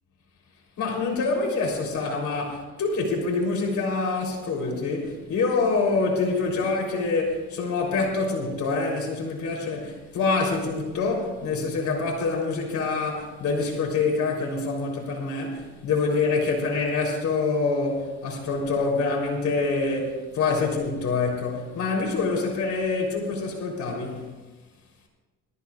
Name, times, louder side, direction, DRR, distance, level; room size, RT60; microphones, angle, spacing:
voice 1, 0.8-24.3, left 3 dB, 70° left, 3.5 m, -26 dB
20.5 x 14.5 x 2.4 m
cardioid pair, 90°, 30 cm